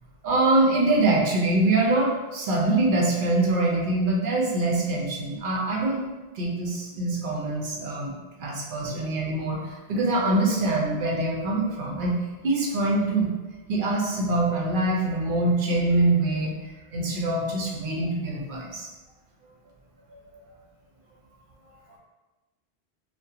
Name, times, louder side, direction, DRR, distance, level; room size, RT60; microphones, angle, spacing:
voice 1, 0.2-6.0 6.3-8.1 8.4-12.2 12.4-13.3 13.7-16.6 16.9-18.9 20.1-20.4, right 2 dB, 65° right, -2 dB, 0.7 m, -24 dB
2.7 x 2.1 x 2.3 m, 1.2 s
omnidirectional pair, 1.0 m